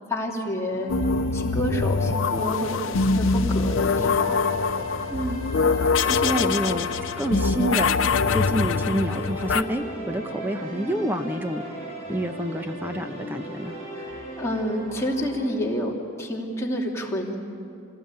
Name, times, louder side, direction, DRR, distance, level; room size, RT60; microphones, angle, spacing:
voice 1, 0.1-0.9 1.3-4.4 13.9-14.1 14.4-17.4, equal, 15° left, -3 dB, 3.0 m, -29 dB
sound 1, 0.7-15.5, equal, 35° right, 6.2 m, -38 dB
sound 2, 0.9-9.6, left 4 dB, 80° left, 0.7 m, -23 dB
voice 2, 5.1-5.4 6.1-7.9 8.3-11.6 12.1-13.8, right 1 dB, 10° right, 7 dB, 0.9 m, -28 dB
26.0 x 18.5 x 9.0 m, 2.5 s
head